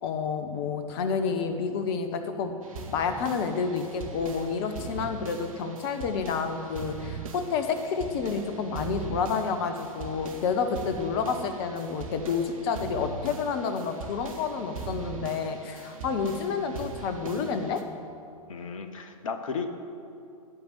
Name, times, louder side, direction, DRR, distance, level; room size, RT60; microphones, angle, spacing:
voice 1, 0.0-2.6 2.9-17.8, left 5 dB, 40° left, 8 dB, 1.2 m, -29 dB
sound 1, 2.6-17.8, right 4 dB, 65° right, 1.6 m, -41 dB
voice 2, 18.5-19.7, left 5 dB, 65° left, 8 dB, 1.1 m, -34 dB
15.5 x 5.2 x 9.2 m, 2.5 s
figure-of-eight pair, 105°, 19 cm